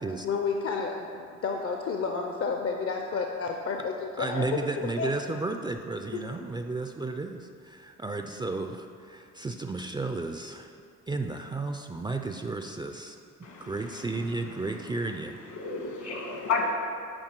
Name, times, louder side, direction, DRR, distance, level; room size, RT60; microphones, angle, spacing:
voice 1, 0.2-4.5 5.0-5.1 6.1-6.2, left 5 dB, 50° left, 3 dB, 0.6 m, -31 dB
voice 2, 4.2-10.7 11.1-13.2 13.6-15.4, right 3 dB, 15° right, 5 dB, 0.3 m, -33 dB
voice 3, 13.4-14.1 15.5-16.7, left 4 dB, 70° left, 1 dB, 1.5 m, -31 dB
8.8 x 4.6 x 4.5 m, 2.3 s
cardioid pair, 90°, 30 cm